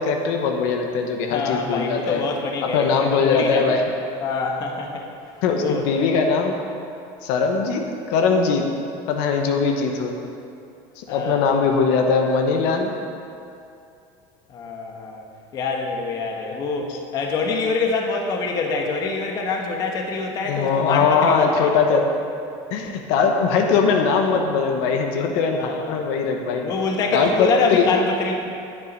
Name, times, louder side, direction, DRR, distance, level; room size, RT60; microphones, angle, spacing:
voice 1, 0.0-2.2 2.6-3.8 5.4-6.5 7.2-7.8 8.1-8.7 9.1-10.1 11.0-12.9 20.5-22.1 22.7-26.7 27.1-27.9, left 5 dB, 60° left, 3 dB, 1.1 m, -20 dB
voice 2, 1.3-3.8 4.2-5.1 5.6-5.8 11.1-11.4 14.5-15.3 15.5-21.7 25.5-26.0 26.6-28.5, left 4 dB, 30° left, 1 dB, 1.1 m, -25 dB
11.0 x 9.7 x 5.3 m, 2.5 s
cardioid pair, 175°, 12 cm